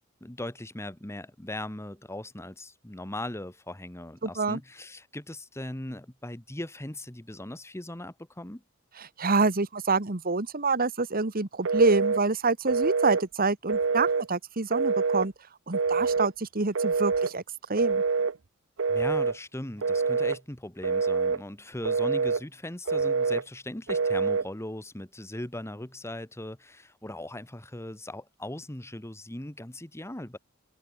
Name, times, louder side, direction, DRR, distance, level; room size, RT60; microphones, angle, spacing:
voice 1, 0.2-8.6 18.9-30.4, left 1 dB, 15° left, 1.5 m, -39 dB
voice 2, 4.2-4.6 9.0-15.3 15.7-17.4 17.7-18.0, right 3 dB, 45° right, 1.6 m, -27 dB
Telephone, 11.7-12.2 12.7-13.2 13.7-14.3 14.7-15.3 15.7-16.3 16.8-17.3 17.8-18.3 18.8-19.4 19.8-20.4 20.8-21.4 21.8-22.4 22.9-23.4 23.9-24.5, right 5 dB, 70° right, 0.7 m, -26 dB
head